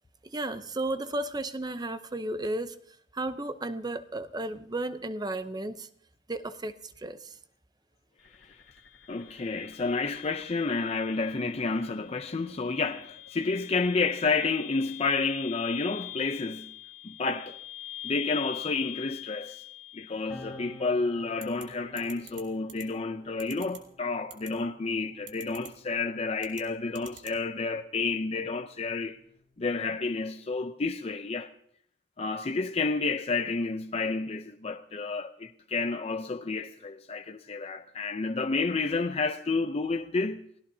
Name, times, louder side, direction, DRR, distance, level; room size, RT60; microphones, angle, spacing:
voice 1, 0.3-2.8 3.1-5.9 6.3-7.4, right 2 dB, 20° right, 0.7 m, -33 dB
sound 1, 8.2-21.2, left 13 dB, 65° left, 1.6 m, -44 dB
voice 2, 9.1-16.7 17.0-17.6 18.0-19.6 19.9-29.2 29.6-31.5 32.2-40.4, left 3 dB, 35° left, 0.5 m, -30 dB
sound 2, 20.3-27.2 28.2-30.0, left 1 dB, 5° left, 4.3 m, -53 dB
sound 3, 21.4-21.6 22.0-22.4 22.7-22.8 23.4-23.8 24.3-24.5 25.3-25.7 26.4-26.6 27.0-27.4, right 7 dB, 80° right, 2.4 m, -44 dB
30.0 x 17.0 x 2.8 m
head